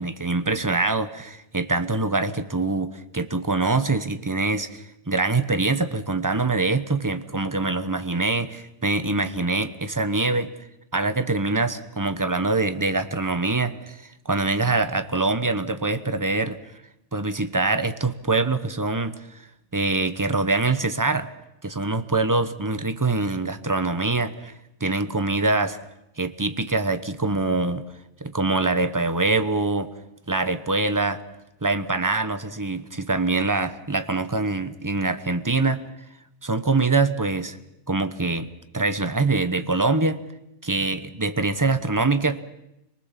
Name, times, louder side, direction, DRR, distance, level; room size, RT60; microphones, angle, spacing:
voice 1, 0.0-10.5 10.9-16.6 17.1-19.1 19.7-21.3 21.6-24.5 24.8-25.8 26.2-27.8 28.2-29.9 30.3-31.2 31.6-35.8 36.4-37.6 37.9-38.5 38.7-40.2 40.6-42.4, right 3 dB, 15° right, 11 dB, 0.9 m, -24 dB
26.0 x 19.5 x 7.4 m, 0.84 s
omnidirectional pair, 1.4 m